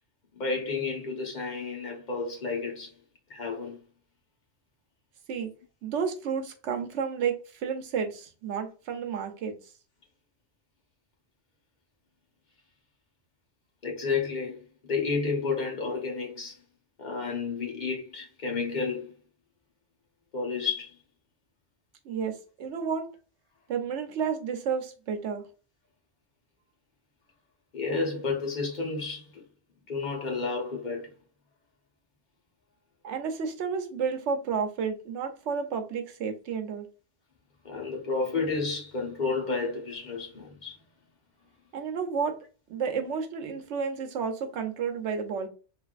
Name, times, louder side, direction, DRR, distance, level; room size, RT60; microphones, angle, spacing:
voice 1, 0.4-2.9 3.3-3.8 13.8-14.6 14.9-16.6 17.0-19.1 20.3-20.9 27.7-29.4 29.9-31.1 37.6-40.8, left 4 dB, 45° left, 1.0 m, -31 dB
voice 2, 5.8-9.6 22.0-23.1 23.7-25.4 33.0-36.9 41.7-42.4 42.7-45.5, right 6 dB, 85° right, 1.0 m, -31 dB
3.3 x 2.4 x 2.4 m
omnidirectional pair, 1.2 m